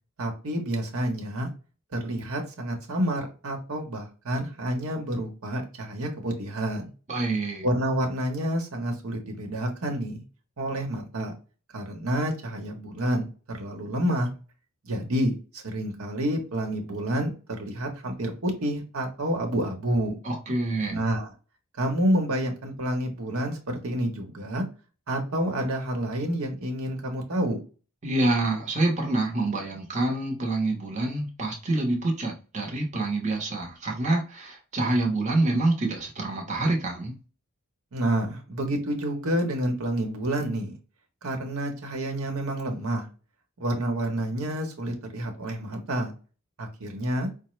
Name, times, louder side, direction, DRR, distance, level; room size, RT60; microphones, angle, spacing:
voice 1, 0.2-1.5 1.9-6.9 7.6-10.2 10.6-11.3 11.7-14.3 14.8-17.3 17.6-20.2 20.9-21.3 21.8-24.6 25.1-27.6 37.9-40.8 41.2-43.1 43.6-46.1 46.6-47.3, right 1 dB, 75° right, 3 dB, 1.0 m, -29 dB
voice 2, 7.1-7.7 20.2-21.0 28.0-37.2, right 2 dB, 35° right, 0 dB, 0.8 m, -26 dB
4.8 x 2.0 x 3.1 m, 0.34 s
head